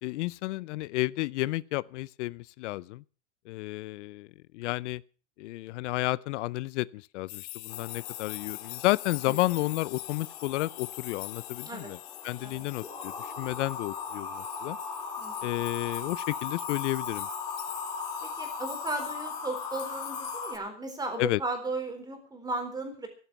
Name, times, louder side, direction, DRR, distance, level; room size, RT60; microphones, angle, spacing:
voice 1, 0.0-3.0 3.5-4.3 4.5-5.0 5.4-12.0 12.2-14.8 15.4-17.3 21.2-21.4, left 19 dB, 80° left, 0.6 m, -31 dB
sound 1, 7.3-20.6, left 22 dB, 50° left, 0.8 m, -43 dB
sound 2, 7.7-20.6, left 5 dB, 10° left, 3.1 m, -39 dB
voice 2, 15.2-15.6 18.2-23.1, right 2 dB, 10° right, 3.8 m, -36 dB
14.0 x 11.5 x 7.0 m
supercardioid pair, 155°, 35 cm